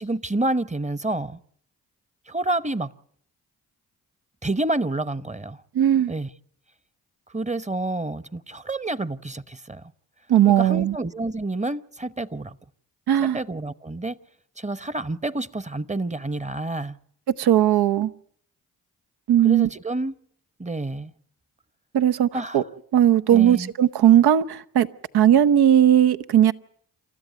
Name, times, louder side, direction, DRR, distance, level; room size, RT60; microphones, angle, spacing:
voice 1, 0.0-1.4 2.3-2.9 4.4-5.6 6.1-6.3 7.3-9.9 10.5-12.6 13.2-14.2 14.6-17.0 19.4-20.2 20.6-21.1 22.3-22.7 23.3-23.7, right 2 dB, 20° right, 0.9 m, -28 dB
voice 2, 5.7-6.1 10.3-11.0 13.1-13.4 17.4-18.1 19.3-19.7 21.9-22.3 22.5-22.6 22.9-24.9 25.1-26.5, right 10 dB, 80° right, 0.9 m, -17 dB
28.5 x 13.0 x 9.3 m
supercardioid pair, 50°, 38 cm